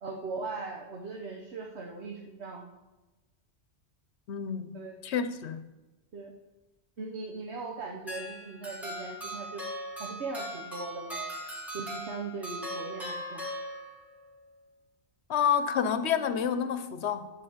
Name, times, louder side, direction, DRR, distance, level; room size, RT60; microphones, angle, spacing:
voice 1, 0.0-2.7 4.7-4.9 6.1-6.3 7.0-9.6 10.0-11.2 11.7-13.4, right 3 dB, 70° right, 1.2 m, -39 dB
voice 2, 4.3-4.7 5.0-5.6 15.3-17.3, left 7 dB, 70° left, 1.0 m, -28 dB
sound 1, 8.1-14.2, equal, ahead, 2.3 m, -39 dB
12.0 x 4.7 x 7.2 m
omnidirectional pair, 1.2 m